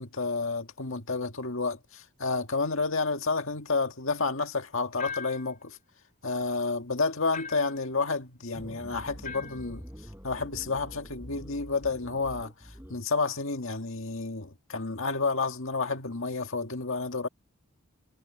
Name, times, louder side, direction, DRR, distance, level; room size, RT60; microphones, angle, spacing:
voice 1, 0.0-5.8 6.2-9.8 10.2-17.3, left 4 dB, 65° left, 1.9 m, -30 dB
sound 1, 5.0-5.5 7.3-7.8 9.2-9.7, left 6 dB, 40° left, 3.5 m, -39 dB
sound 2, 8.5-13.0, equal, 10° right, 5.9 m, -45 dB
head